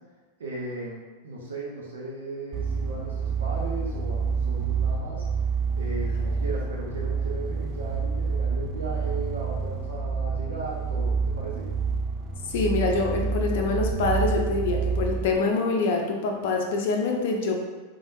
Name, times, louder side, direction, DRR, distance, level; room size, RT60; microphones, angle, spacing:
voice 1, 0.4-5.2 5.7-11.7, right 2 dB, 65° right, -4 dB, 0.7 m, -36 dB
sound 1, 2.5-15.3, right 5 dB, 25° right, 0.5 m, -28 dB
voice 2, 12.5-17.6, left 3 dB, 55° left, 2 dB, 0.6 m, -25 dB
3.8 x 3.4 x 2.6 m, 1.3 s
figure-of-eight pair, 90°, 0 cm